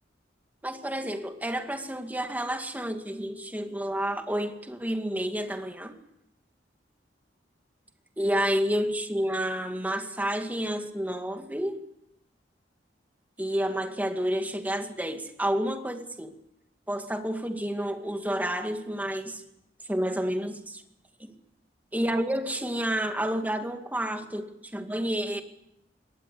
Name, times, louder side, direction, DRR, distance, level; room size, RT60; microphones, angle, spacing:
voice 1, 0.6-5.9 8.2-11.8 13.4-16.3 16.9-19.4 19.9-20.8 21.2-21.3 21.9-24.5 24.7-25.4, equal, 10° right, 6 dB, 2.1 m, -30 dB
22.5 x 18.5 x 8.4 m, 0.83 s
head